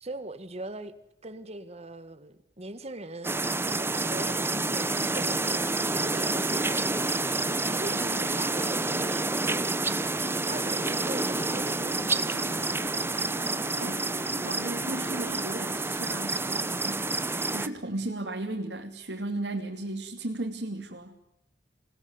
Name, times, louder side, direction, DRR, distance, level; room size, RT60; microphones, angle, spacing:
voice 1, 0.0-0.9 1.2-3.3 3.7-9.6 10.2-12.3, right 2 dB, 35° right, 1.9 m, -40 dB
sound 1, 3.2-17.7, right 2 dB, 15° right, 1.0 m, -29 dB
sound 2, 10.5-15.5, left 2 dB, 75° left, 2.7 m, -46 dB
voice 2, 13.7-14.1 14.4-17.0 17.5-21.2, right 2 dB, 75° right, 2.9 m, -35 dB
28.0 x 19.5 x 9.8 m
head